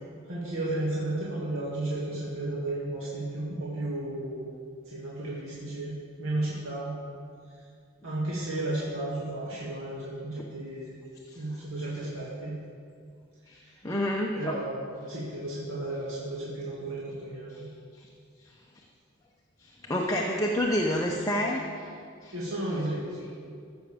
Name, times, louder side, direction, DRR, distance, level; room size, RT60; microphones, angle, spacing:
voice 1, 0.3-4.5 4.9-6.9 8.0-11.0 11.3-12.6 13.6-13.7 14.3-17.7 22.3-23.3, right 1 dB, 85° right, -6 dB, 2.2 m, -33 dB
voice 2, 13.8-14.6 17.5-17.6 18.0-18.1 19.6-21.9 22.2-22.3, left 1 dB, 15° left, -1 dB, 0.8 m, -29 dB
14.0 x 6.1 x 7.1 m, 2.3 s
head